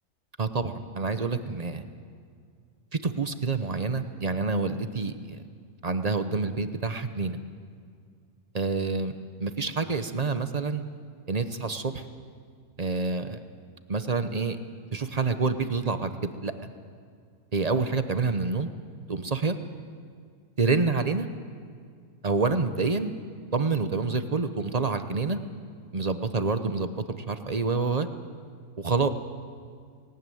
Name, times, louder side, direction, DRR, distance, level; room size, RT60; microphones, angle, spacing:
voice 1, 0.4-1.8 3.0-5.4 5.8-7.4 8.5-9.1 9.4-10.8 11.3-12.0 12.8-13.4 13.9-14.6 14.9-16.1 16.4-16.5 17.5-18.7 19.1-19.6 20.6-21.3 22.2-23.1 23.5-25.4 25.9-28.1 28.8-29.1, right 4 dB, 35° right, 9 dB, 0.7 m, -27 dB
19.0 x 18.0 x 9.2 m, 2.2 s
omnidirectional pair, 1.7 m